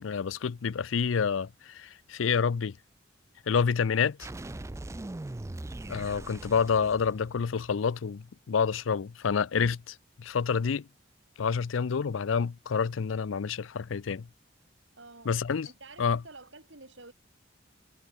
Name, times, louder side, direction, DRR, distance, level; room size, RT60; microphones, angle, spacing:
voice 1, 0.0-2.8 3.5-4.2 5.9-10.9 11.4-14.3 15.3-15.7 16.0-16.2, left 6 dB, 85° left, 0.5 m, -28 dB
sound 1, 4.2-7.9, right 2 dB, 15° right, 0.4 m, -41 dB
voice 2, 15.0-15.4 15.6-17.1, right 3 dB, 70° right, 5.7 m, -49 dB
head